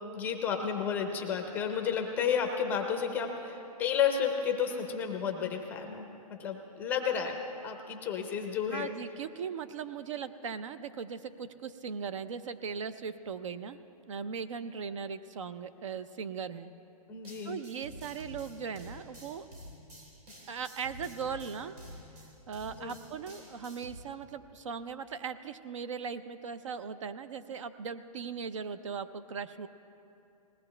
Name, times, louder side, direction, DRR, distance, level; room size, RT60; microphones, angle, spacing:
voice 1, 0.1-7.4 7.6-9.0 17.1-17.6 22.7-23.0, left 7 dB, 10° left, 4 dB, 0.5 m, -32 dB
voice 2, 8.7-13.8 14.1-16.7 17.4-19.5 20.5-21.7 22.5-29.7, right 6 dB, 55° right, 13 dB, 0.5 m, -39 dB
sound 1, 17.2-23.9, equal, 90° right, 3.4 m, -49 dB
20.0 x 17.5 x 3.3 m, 2.8 s
hypercardioid pair, 165°, 20 cm